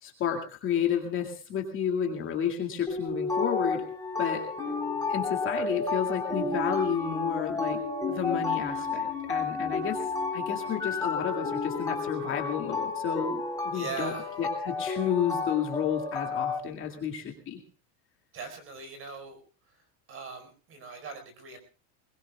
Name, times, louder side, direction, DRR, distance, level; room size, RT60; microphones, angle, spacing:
voice 1, 0.0-3.9 4.2-4.4 5.1-7.8 8.1-10.0 10.3-14.1 14.4-17.6, left 8 dB, 30° left, 3 dB, 2.3 m, -31 dB
sound 1, 2.9-16.6, left 4 dB, 10° left, 3.6 m, -31 dB
voice 2, 13.7-14.3 18.3-19.4 19.7-19.8 20.1-21.6, right 4 dB, 30° right, 8 dB, 4.7 m, -40 dB
21.5 x 21.5 x 2.3 m, 0.37 s
supercardioid pair, 165°, 44 cm